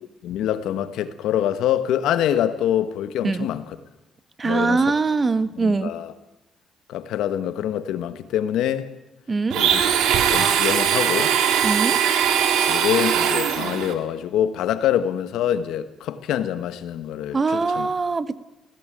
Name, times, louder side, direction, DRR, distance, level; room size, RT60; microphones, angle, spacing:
voice 1, 0.2-3.7 4.4-4.8 5.6-6.1 6.9-8.9 9.6-9.8 10.1-11.3 12.7-17.9, left 10 dB, 85° left, 1.4 m, -25 dB
voice 2, 4.4-5.9 9.3-9.6 11.6-12.0 17.3-18.4, right 4 dB, 30° right, 1.1 m, -22 dB
Domestic sounds home sounds, 9.5-13.9, right 8 dB, 90° right, 2.2 m, -20 dB
18.0 x 16.5 x 9.1 m
cardioid pair, 90°, 0 cm